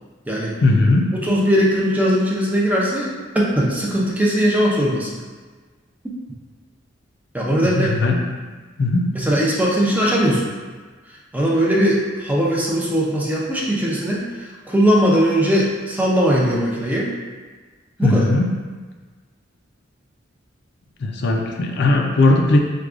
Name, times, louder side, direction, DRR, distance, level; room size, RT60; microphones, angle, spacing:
voice 1, 0.6-1.1 7.6-8.2 8.8-9.1 18.0-18.5 21.0-22.6, left 2 dB, 60° left, 1 dB, 0.4 m, -18 dB
voice 2, 1.2-3.1 3.3-5.1 7.3-7.9 9.2-10.5 11.3-17.1 18.0-18.3, equal, 10° right, -4 dB, 0.5 m, -19 dB
4.6 x 2.2 x 2.4 m, 1.4 s
head